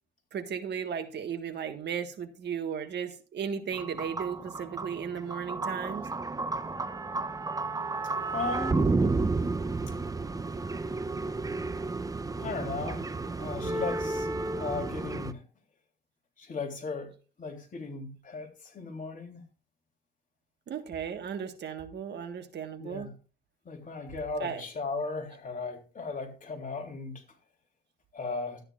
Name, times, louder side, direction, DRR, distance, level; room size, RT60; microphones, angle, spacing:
voice 1, 0.3-6.1 20.7-23.1 24.4-24.6, right 7 dB, 60° right, 1.6 m, -35 dB
sound 1, 3.7-15.3, right 3 dB, 15° right, 0.6 m, -32 dB
voice 2, 8.3-9.0 12.4-14.3 14.6-15.4 16.4-17.1 17.4-19.4 22.8-23.1 23.6-27.1 28.1-28.6, left 3 dB, 40° left, 3.2 m, -36 dB
13.0 x 9.8 x 2.5 m
cardioid pair, 90°, 20 cm